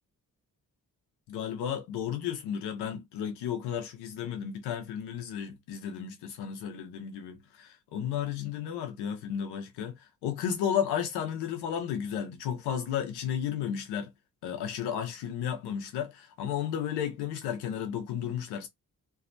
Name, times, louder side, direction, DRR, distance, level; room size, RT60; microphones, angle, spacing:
voice 1, 1.3-14.1 14.4-18.7, left 9 dB, 85° left, 0.8 m, -33 dB
2.4 x 2.2 x 2.5 m
hypercardioid pair, 40°, 39 cm